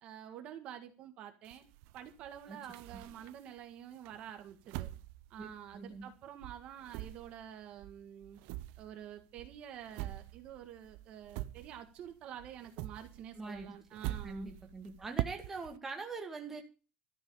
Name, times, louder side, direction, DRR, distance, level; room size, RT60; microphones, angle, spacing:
voice 1, 0.0-1.7 1.9-4.9 5.3-8.4 8.8-14.6, right 10 dB, 45° right, 6 dB, 1.7 m, -48 dB
sound 1, 1.5-3.6 4.1-6.2 6.4-12.1 12.4-15.8, right 16 dB, 80° right, 0.6 m, -44 dB
voice 2, 5.4-6.1 13.4-13.7 14.2-16.6, right 3 dB, 15° right, 3 dB, 2.1 m, -43 dB
13.0 x 6.2 x 8.8 m, 0.34 s
cardioid pair, 175°, 3 cm